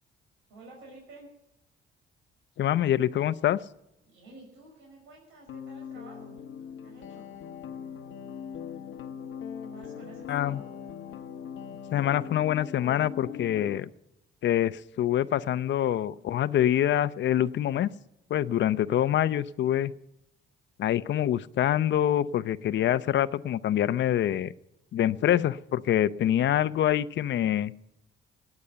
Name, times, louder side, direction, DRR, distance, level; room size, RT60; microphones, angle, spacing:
voice 1, 0.5-1.3 4.1-6.4 6.8-7.3 9.6-10.6 18.7-18.8, right 2 dB, 80° right, -2 dB, 6.2 m, -50 dB
voice 2, 2.6-3.6 10.3-10.6 11.9-13.9 14.4-17.9 18.3-19.9 20.8-24.5 24.9-27.7, left 11 dB, 65° left, 14 dB, 0.7 m, -25 dB
sound 1, 5.5-13.8, left 8 dB, 85° left, 1.1 m, -40 dB
19.0 x 9.6 x 6.9 m, 0.88 s
cardioid pair, 90°, 20 cm